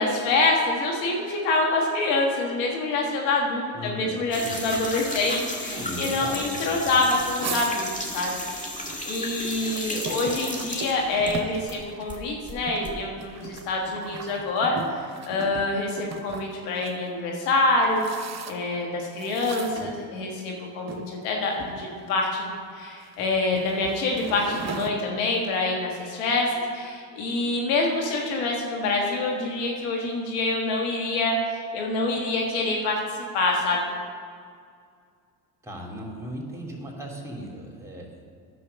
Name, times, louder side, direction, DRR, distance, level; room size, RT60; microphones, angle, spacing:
voice 1, 0.0-8.7 9.1-18.0 18.5-33.8, left 2 dB, 85° left, 0 dB, 1.7 m, -26 dB
voice 2, 3.7-4.5 5.6-7.1 35.6-38.3, equal, 5° right, -1 dB, 2.9 m, -37 dB
sound 1, 4.3-11.8 12.1-12.9, left 1 dB, 15° left, 2.0 m, -34 dB
sound 2, 7.1-9.0 9.4-17.0 17.6-18.8 19.2-20.4 20.9-21.1 21.5-22.3 22.9-24.9, right 5 dB, 35° right, 0.9 m, -38 dB
10.0 x 6.3 x 6.7 m, 2.2 s
hypercardioid pair, 60°, 48 cm